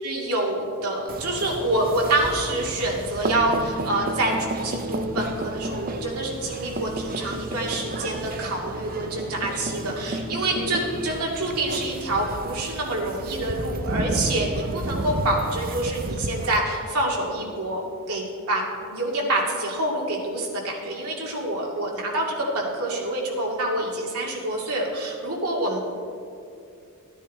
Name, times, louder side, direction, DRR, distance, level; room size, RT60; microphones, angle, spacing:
voice 1, 0.0-25.9, right 1 dB, 85° right, -2 dB, 2.3 m, -27 dB
sound 1, 1.1-16.6, right 2 dB, 40° right, 0.7 m, -32 dB
13.5 x 9.5 x 4.2 m, 2.5 s
head